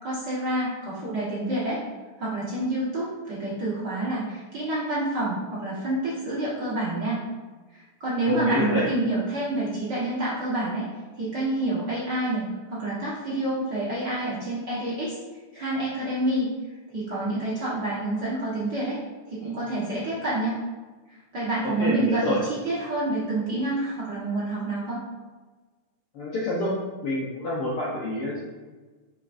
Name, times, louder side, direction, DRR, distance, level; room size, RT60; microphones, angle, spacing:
voice 1, 0.0-1.8 2.2-7.2 7.7-10.8 11.2-15.2 15.5-16.5 16.9-19.0 19.3-20.6 21.3-25.0, right 2 dB, 45° right, -9 dB, 1.5 m, -28 dB
voice 2, 8.3-8.9 21.8-22.4 26.1-26.7 27.0-28.4, left 1 dB, 65° left, -5 dB, 1.4 m, -27 dB
6.3 x 6.1 x 2.6 m, 1.3 s
omnidirectional pair, 3.5 m